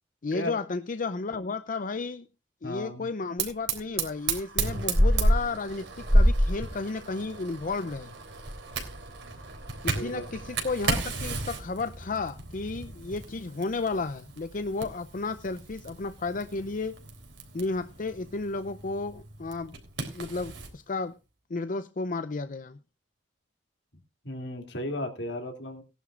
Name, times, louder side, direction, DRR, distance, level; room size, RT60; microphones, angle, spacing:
voice 1, 0.2-2.3 2.6-8.1 9.8-17.0 17.5-19.7 20.1-21.1 21.5-22.8, left 3 dB, 45° left, 0.5 m, -33 dB
voice 2, 2.6-3.1 9.9-10.5 24.2-25.8, left 1 dB, 65° left, 2.7 m, -35 dB
Fire, 3.4-20.7, right 1 dB, 75° right, 3.6 m, -30 dB
19.0 x 11.0 x 2.5 m
head